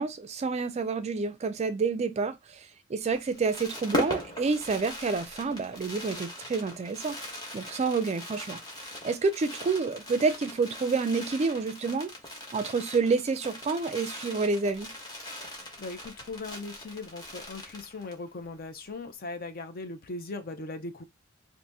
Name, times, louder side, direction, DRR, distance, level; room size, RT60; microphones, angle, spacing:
voice 1, 0.0-7.2 7.5-8.6 9.0-12.1 12.5-14.9, right 4 dB, 30° right, 0.3 m, -28 dB
Fireworks, 3.1-18.3 18.6-18.7 18.9-19.1, left 1 dB, 20° left, 1.0 m, -40 dB
voice 2, 15.6-21.0, left 3 dB, 45° left, 0.5 m, -39 dB
2.7 x 2.6 x 3.4 m
head